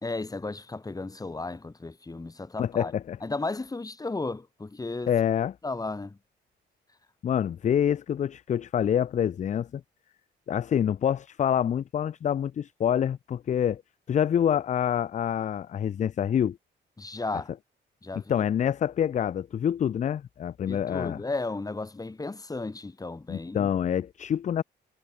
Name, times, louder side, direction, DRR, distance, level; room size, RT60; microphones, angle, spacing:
voice 1, 0.0-2.9 3.2-5.1 5.6-6.2 17.0-17.5 18.0-18.4 20.7-23.7, left 3 dB, 20° left, 2.1 m, -34 dB
voice 2, 2.6-3.2 5.1-5.6 7.2-9.8 10.5-13.8 14.1-16.6 18.1-21.2 23.3-24.6, left 9 dB, 40° left, 0.4 m, -26 dB
cardioid pair, 90°, 20 cm